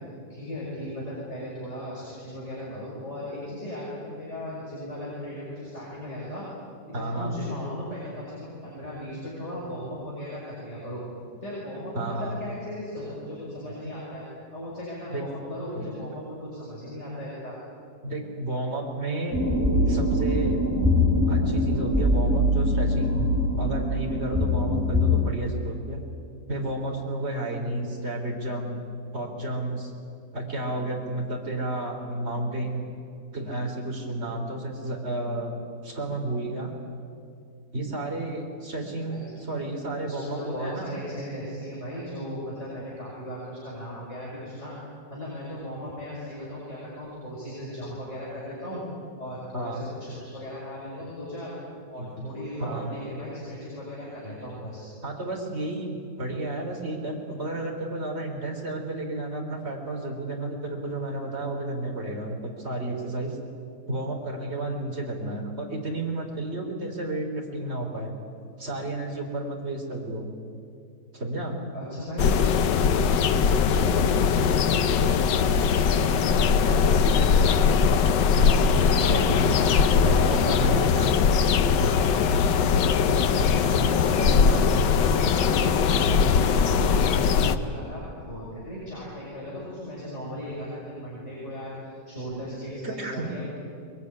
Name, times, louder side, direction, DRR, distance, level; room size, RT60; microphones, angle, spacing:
voice 1, 0.3-6.4 6.9-11.0 11.4-14.2 14.5-17.6 39.1-39.4 40.0-44.7 45.1-48.8 49.2-51.5 51.9-54.9 71.7-72.7 73.0-75.0 75.6-77.9 78.4-79.6 80.0-80.7 81.3-81.4 83.6-85.7 86.2-93.4, equal, 40° left, -6 dB, 6.7 m, -37 dB
voice 2, 6.9-7.3 11.9-12.4 15.1-15.2 15.7-15.9 18.0-19.4 19.9-20.6 21.1-23.2 23.6-26.0 26.5-28.8 29.1-29.9 30.3-32.9 33.3-35.6 35.8-36.7 37.7-41.0 49.5-49.8 52.0-52.3 52.6-53.0 55.0-63.4 63.9-68.1 68.6-70.3 71.1-71.6 78.3-78.6 79.1-79.4 80.0-81.1 81.8-82.1 84.1-84.6 92.8-93.3, right 2 dB, 35° right, 1 dB, 4.0 m, -32 dB
sound 1, 19.3-25.3, left 1 dB, 5° right, 3.4 m, -23 dB
sound 2, 72.2-87.6, left 6 dB, 90° left, 1.6 m, -21 dB
22.5 x 22.0 x 9.8 m, 2.4 s
omnidirectional pair, 1.9 m